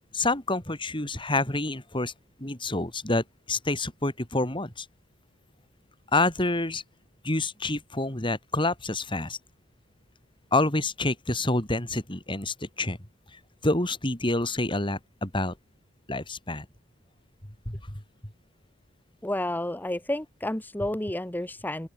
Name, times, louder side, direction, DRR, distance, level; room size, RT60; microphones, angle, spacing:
voice 1, 0.1-2.1 2.4-4.9 6.1-6.8 7.2-9.4 10.5-13.0 13.6-15.5 16.1-16.7 17.7-17.8, left 2 dB, 25° left, 3.9 m, -27 dB
voice 2, 19.2-21.9, left 1 dB, 10° left, 1.0 m, -30 dB
open air
head